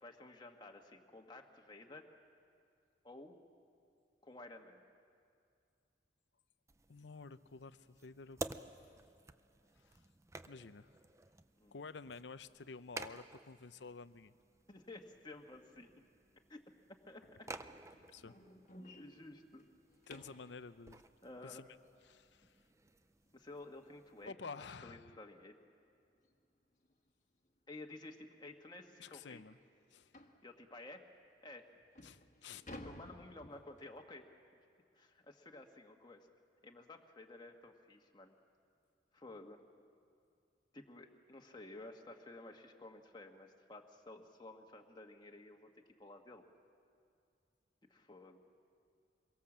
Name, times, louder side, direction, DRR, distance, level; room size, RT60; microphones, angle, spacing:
voice 1, 0.0-2.1 3.0-3.4 4.2-4.8 11.6-11.7 14.7-16.1 16.5-16.6 16.9-17.5 19.0-19.7 21.2-21.6 23.3-25.6 27.7-29.4 30.4-31.0 31.4-31.7 32.4-32.5 32.8-34.3 34.9-36.3 36.6-38.3 39.1-39.6 40.7-45.7 46.0-46.5 47.9-48.4, left 2 dB, 25° left, 2 dB, 1.4 m, -53 dB
sound 1, 6.7-24.3, right 2 dB, 15° right, 0.6 m, -53 dB
voice 2, 6.9-8.5 9.8-10.0 10.5-10.9 11.7-14.3 18.1-18.3 20.1-21.0 21.4-21.7 22.1-22.6 24.2-25.2 29.0-29.6 29.9-30.1 32.0-32.6, left 4 dB, 75° left, 13 dB, 0.7 m, -51 dB
sound 2, 17.4-20.5 23.3-23.4 23.9-24.1 24.5-24.6 25.0-25.1 26.2-26.4 26.8-26.9 27.6-27.7 28.0-28.1 28.6-28.7 30.1-30.4 31.2-31.3 31.7-34.0, left 1 dB, 45° left, 1.5 m, -55 dB
25.5 x 22.5 x 7.4 m, 2.3 s
head